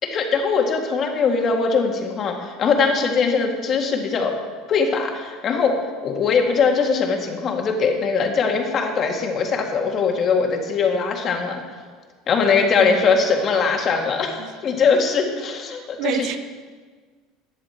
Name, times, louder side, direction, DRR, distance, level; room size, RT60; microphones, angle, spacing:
voice 1, 0.0-4.3 4.7-5.8 6.0-11.6 12.3-16.3, left 5 dB, 40° left, 2.0 m, -21 dB
voice 2, 15.8-16.4, right 9 dB, 55° right, 0.7 m, -28 dB
14.0 x 10.0 x 4.5 m
supercardioid pair, 130°, 0 cm